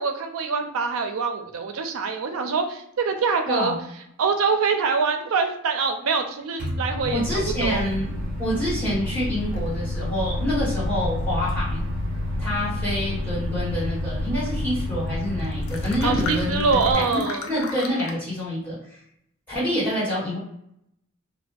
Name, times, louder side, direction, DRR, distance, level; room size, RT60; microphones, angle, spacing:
voice 1, 0.0-3.7 4.2-7.2 7.6-7.9 16.0-17.5, right 5 dB, 85° right, 5 dB, 0.4 m, -24 dB
voice 2, 3.5-3.8 7.1-8.1 8.4-11.8 12.4-17.2 17.5-18.8 19.5-20.4, left 1 dB, 10° left, -10 dB, 1.3 m, -27 dB
Microwave oven, 6.6-16.9, left 1 dB, 40° right, 1.0 m, -29 dB
sound 1, 9.5-9.7 10.5-10.6 14.8-14.9 15.1-15.2 15.4-18.2, left 4 dB, 75° left, 0.4 m, -37 dB
2.3 x 2.1 x 2.5 m, 0.75 s
head